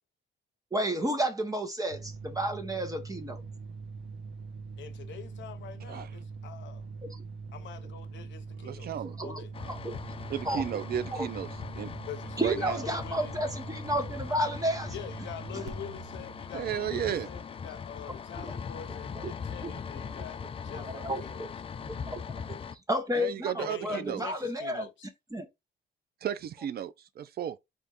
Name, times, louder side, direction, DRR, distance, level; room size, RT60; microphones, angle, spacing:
voice 1, 0.7-3.4 7.1-7.2 8.9-9.9 10.4-10.6 11.1-11.3 12.4-14.9 15.5-15.7 18.4-18.5 19.1-19.3 19.6-20.2 20.7-21.5 21.8-22.5 22.9-24.9 25.3-25.5, equal, 15° right, 0.8 m, -32 dB
sound 1, 1.9-18.3, right 4 dB, 85° right, 0.7 m, -43 dB
voice 2, 4.8-6.9 7.5-8.9 9.2-9.5 12.1-13.4 14.9-21.5 23.6-25.1, left 9 dB, 70° left, 0.7 m, -45 dB
voice 3, 8.6-9.2 10.3-11.5 11.8-11.9 12.4-12.8 16.5-17.3 23.2-24.2 26.2-27.6, right 9 dB, 50° right, 0.5 m, -34 dB
sound 2, 9.5-22.8, left 6 dB, 30° left, 0.3 m, -41 dB
3.6 x 2.4 x 4.1 m
cardioid pair, 90°, 20 cm